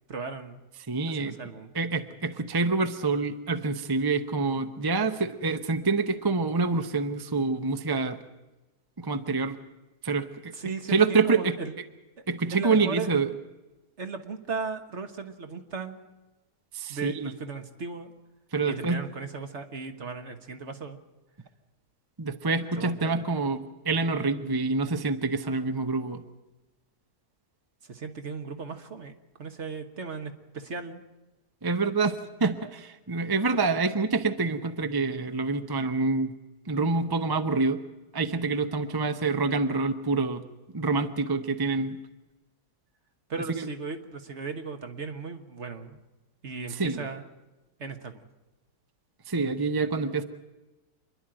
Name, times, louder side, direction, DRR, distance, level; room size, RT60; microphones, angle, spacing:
voice 1, 0.1-0.6 1.1-1.7 10.5-11.7 12.5-13.1 14.0-16.0 16.9-18.1 18.6-21.0 22.8-23.2 27.8-29.1 29.4-31.0 43.3-46.0 46.4-47.3 47.8-48.2, right 4 dB, 50° right, 7 dB, 1.6 m, -36 dB
voice 2, 0.9-1.4 1.7-8.2 9.0-9.6 10.0-10.5 10.9-11.6 12.3-13.3 16.7-17.3 18.5-19.1 22.2-26.2 31.6-36.3 36.7-37.8 38.1-40.4 40.7-42.0 43.5-43.7 46.7-47.1 49.3-50.2, right 4 dB, 20° right, 8 dB, 0.7 m, -27 dB
26.5 x 11.0 x 9.0 m, 1.1 s
omnidirectional pair, 1.6 m